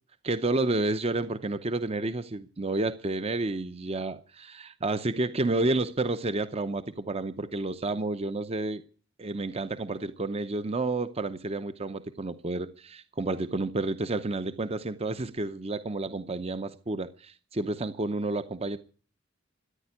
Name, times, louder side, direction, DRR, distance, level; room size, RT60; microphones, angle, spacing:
voice 1, 0.2-8.8 9.2-18.8, right 2 dB, 30° right, 0.8 m, -30 dB
14.5 x 9.8 x 9.6 m
head